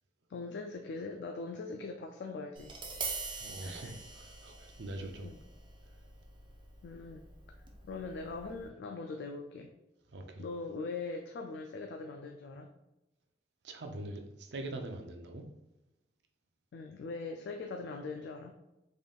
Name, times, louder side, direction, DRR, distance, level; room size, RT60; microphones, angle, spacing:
voice 1, 0.3-2.7 3.4-3.9 5.2-5.4 6.8-7.3 7.8-9.7 10.4-12.7 16.7-18.5, left 3 dB, 70° left, 4 dB, 0.3 m, -41 dB
Tap, 2.6-8.7, right 4 dB, 25° right, 0.5 m, -45 dB
voice 2, 3.4-5.3 10.1-10.4 13.6-15.5, right 2 dB, 75° right, 4 dB, 0.5 m, -43 dB
3.8 x 3.5 x 2.3 m, 0.96 s
head